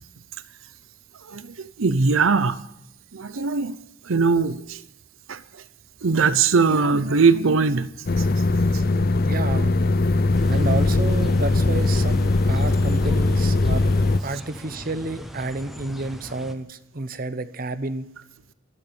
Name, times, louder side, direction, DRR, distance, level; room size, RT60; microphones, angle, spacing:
voice 1, 1.3-2.6 3.1-3.8 4.1-4.8 5.3-5.4 6.0-7.9 8.2-8.3, right 4 dB, 85° right, 14 dB, 0.7 m, -20 dB
sound 1, 8.1-14.2, left 2 dB, 45° left, 0.5 m, -20 dB
voice 2, 9.2-9.7 10.5-13.9 14.2-18.1, right 2 dB, 45° right, 12 dB, 0.8 m, -30 dB
sound 2, 10.3-16.5, equal, ahead, 0.9 m, -39 dB
12.5 x 12.0 x 6.9 m, 0.84 s
head